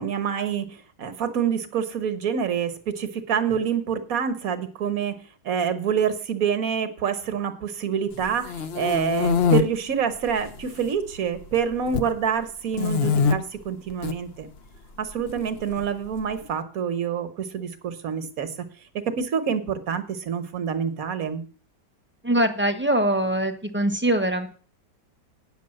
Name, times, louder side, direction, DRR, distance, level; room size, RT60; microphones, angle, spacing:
voice 1, 0.0-5.2 5.4-14.5 15.0-18.7 19.0-21.4, right 7 dB, 55° right, 10 dB, 1.6 m, -27 dB
sound 1, 8.2-9.6 10.3-10.9 11.2-12.1 12.7-13.3 13.9-14.1 15.3-16.2, left 7 dB, 50° left, 0.8 m, -23 dB
voice 2, 22.2-24.5, right 1 dB, 10° right, 6 dB, 1.0 m, -22 dB
9.5 x 6.6 x 7.6 m, 0.41 s
omnidirectional pair, 1.8 m